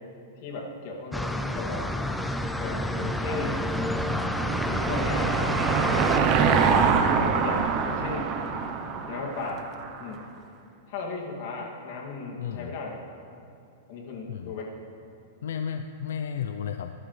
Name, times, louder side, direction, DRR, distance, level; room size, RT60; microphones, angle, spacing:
voice 1, 0.4-1.9 2.6-3.6 4.8-5.3 6.1-8.3 9.1-9.6 10.0-10.3 10.9-13.0 13.9-14.7, left 3 dB, 50° left, -1 dB, 2.4 m, -36 dB
sound 1, 1.1-6.2, left 1 dB, 5° left, 0.4 m, -29 dB
Car passing by / Engine, 3.2-10.0, right 6 dB, 30° right, 0.8 m, -25 dB
voice 2, 12.4-12.7 14.3-14.5 15.4-16.9, left 8 dB, 80° left, 7 dB, 0.5 m, -33 dB
20.0 x 12.0 x 3.3 m, 2.6 s
supercardioid pair, 155°, 0 cm